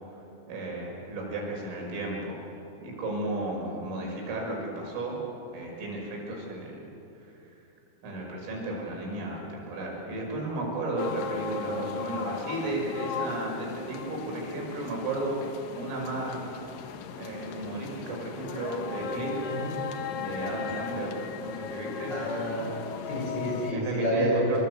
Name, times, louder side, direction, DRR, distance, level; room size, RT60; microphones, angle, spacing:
voice 1, 0.5-2.4 2.8-5.2 5.5-6.9 8.0-15.5 15.7-16.5 17.2-19.4 20.1-22.2 23.7-24.6, right 2 dB, 90° right, -1 dB, 8.3 m, -34 dB
sound 1, 11.0-23.7, left 6 dB, 70° left, 2.2 m, -37 dB
voice 2, 22.1-22.7 23.1-24.6, equal, 20° left, -3 dB, 7.8 m, -28 dB
28.0 x 25.0 x 8.2 m, 2.9 s
omnidirectional pair, 5.6 m